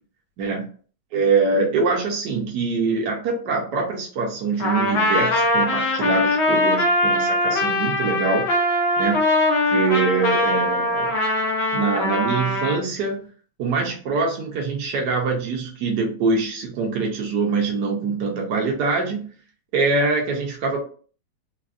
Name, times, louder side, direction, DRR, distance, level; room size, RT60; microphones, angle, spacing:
voice 1, 1.1-8.5 9.0-9.2 9.7-11.1 11.7-13.2 13.6-19.3 19.7-20.8, right 4 dB, 75° right, 0 dB, 1.2 m, -24 dB
Trumpet, 4.6-12.8, left 1 dB, 60° left, 0.9 m, -21 dB
3.4 x 2.3 x 2.3 m, 0.41 s
omnidirectional pair, 1.9 m